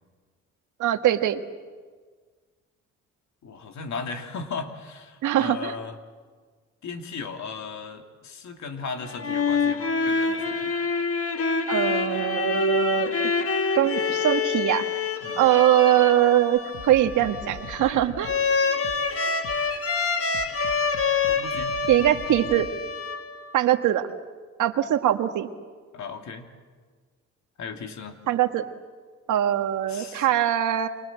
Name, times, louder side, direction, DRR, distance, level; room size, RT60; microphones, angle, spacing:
voice 1, 0.8-1.4 5.2-5.7 11.7-13.1 13.7-14.9 15.4-18.3 21.9-22.7 23.5-24.1 24.6-25.5 28.3-28.6 29.3-30.9, right 12 dB, 80° right, 7 dB, 1.7 m, -22 dB
voice 2, 3.4-5.9 6.8-10.8 15.2-15.4 21.3-21.8 25.9-26.5 27.6-28.2 29.9-30.3, left 5 dB, 70° left, 5 dB, 2.9 m, -36 dB
sound 1, 9.0-23.6, left 4 dB, 50° left, 1.9 m, -26 dB
sound 2, 16.6-19.8 20.3-22.7, left 6 dB, 85° left, 1.8 m, -42 dB
29.5 x 24.5 x 7.6 m, 1.5 s
cardioid pair, 90°, 30 cm